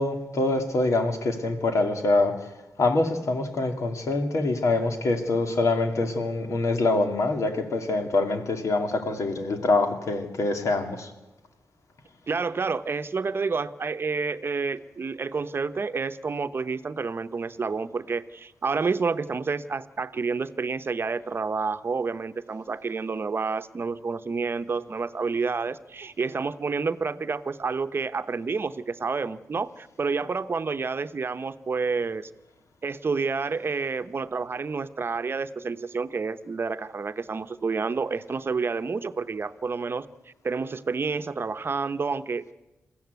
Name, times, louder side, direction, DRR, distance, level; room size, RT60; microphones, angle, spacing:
voice 1, 0.0-2.4 2.8-11.1, left 2 dB, 75° left, 6 dB, 2.4 m, -25 dB
voice 2, 12.3-32.3 32.8-40.1 40.4-42.5, right 4 dB, 45° right, 11 dB, 0.8 m, -29 dB
21.5 x 14.5 x 9.4 m, 1.0 s
cardioid pair, 80°, 5 cm